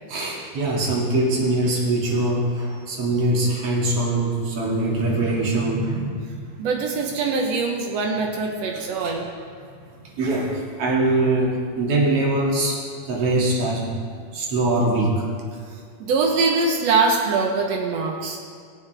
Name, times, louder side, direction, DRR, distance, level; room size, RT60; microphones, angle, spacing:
voice 1, 0.1-6.3 8.7-9.2 10.2-12.8 13.0-13.9 14.3-15.2, right 2 dB, 45° right, -3 dB, 2.9 m, -22 dB
voice 2, 6.6-9.3 16.0-18.4, right 4 dB, 85° right, 1 dB, 1.4 m, -22 dB
22.5 x 8.3 x 3.4 m, 2.1 s
omnidirectional pair, 4.5 m